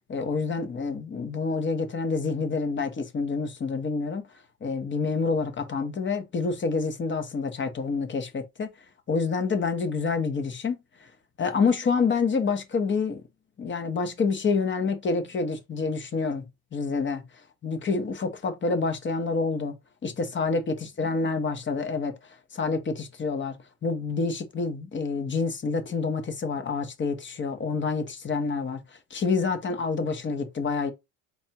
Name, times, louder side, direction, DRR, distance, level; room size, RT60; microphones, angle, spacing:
voice 1, 0.1-4.2 4.6-8.7 9.1-10.8 11.4-13.2 13.6-16.4 16.7-17.2 17.6-19.8 20.0-22.1 22.5-28.8 29.1-30.9, left 4 dB, 30° left, 0.9 m, -27 dB
4.0 x 3.4 x 2.9 m
cardioid pair, 105°, 37 cm